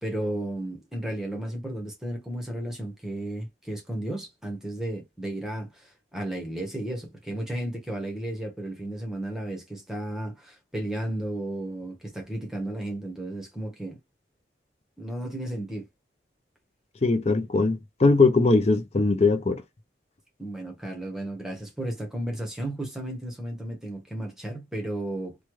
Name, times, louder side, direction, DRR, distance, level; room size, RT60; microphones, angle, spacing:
voice 1, 0.0-14.0 15.0-15.9 20.4-25.4, right 1 dB, 5° right, 1.0 m, -33 dB
voice 2, 17.0-19.6, left 3 dB, 35° left, 0.5 m, -21 dB
3.2 x 2.2 x 3.0 m
head